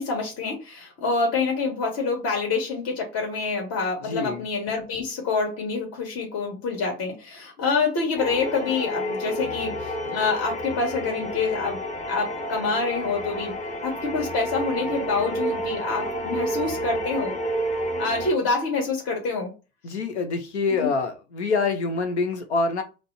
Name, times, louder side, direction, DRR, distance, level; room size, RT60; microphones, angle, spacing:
voice 1, 0.0-9.7 10.1-11.8 12.1-13.5 13.8-17.4 18.0-19.5 20.8-20.9, left 4 dB, 45° left, 1.8 m, -26 dB
voice 2, 4.0-4.4 19.8-22.8, left 4 dB, 80° left, 0.9 m, -26 dB
sound 1, 8.2-18.3, equal, 20° left, 1.1 m, -30 dB
5.2 x 2.1 x 4.1 m
figure-of-eight pair, 70°, 33 cm